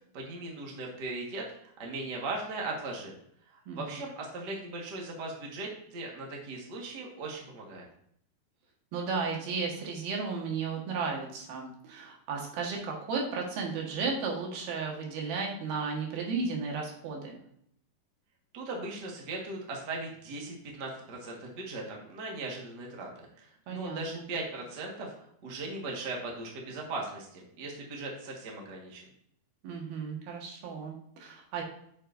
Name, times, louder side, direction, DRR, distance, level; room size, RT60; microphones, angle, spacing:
voice 1, 0.1-3.1 3.5-7.9 18.5-25.1 25.4-29.0, right 2 dB, 50° right, -1 dB, 1.2 m, -38 dB
voice 2, 3.7-4.0 8.9-17.4 23.7-24.3 29.6-31.6, right 4 dB, 70° right, 0 dB, 3.2 m, -34 dB
9.9 x 6.5 x 2.6 m, 0.68 s
omnidirectional pair, 4.5 m